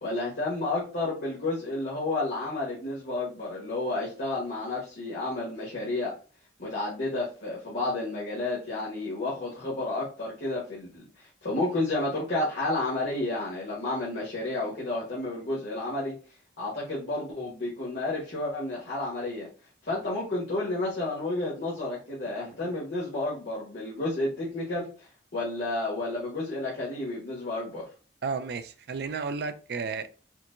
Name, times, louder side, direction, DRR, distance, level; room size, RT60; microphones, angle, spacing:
voice 1, 0.0-6.1 6.6-16.1 16.6-19.5 19.8-27.8, left 2 dB, 70° left, 1.3 m, -31 dB
voice 2, 28.2-30.1, right 5 dB, 60° right, 0.4 m, -32 dB
4.4 x 2.2 x 2.6 m
head